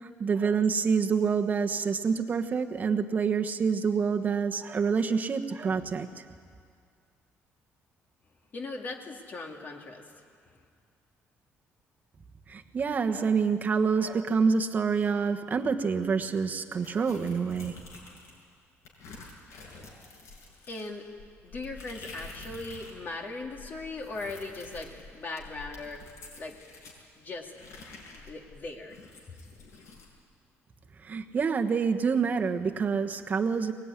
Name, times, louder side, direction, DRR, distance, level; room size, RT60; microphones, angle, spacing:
voice 1, 0.0-6.2 12.5-17.8 31.0-33.7, right 5 dB, 35° right, 6 dB, 1.3 m, -27 dB
voice 2, 8.5-10.1 20.7-21.1 21.4-26.0 26.4-26.6 27.2-27.5 28.1-29.0, left 3 dB, 40° left, 2 dB, 2.3 m, -39 dB
sound 1, 16.8-18.4 18.8-23.0 23.3-27.0 27.5-30.1, left 3 dB, 80° left, 7.0 m, -48 dB
23.5 x 20.0 x 9.8 m, 2.2 s
cardioid pair, 140°, 5 cm